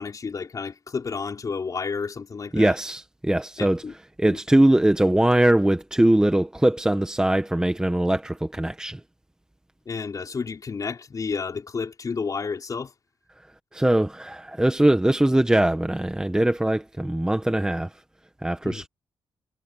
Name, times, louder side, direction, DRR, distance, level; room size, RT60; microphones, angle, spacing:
voice 1, 0.0-2.7 3.6-3.9 4.2-4.4 9.9-12.9 18.6-18.8, left 5 dB, 40° left, 4.7 m, -31 dB
voice 2, 2.5-9.0 13.4-13.5 13.7-18.0 18.4-18.9, right 1 dB, 10° right, 1.2 m, -21 dB
cardioid pair, 105°, 9 cm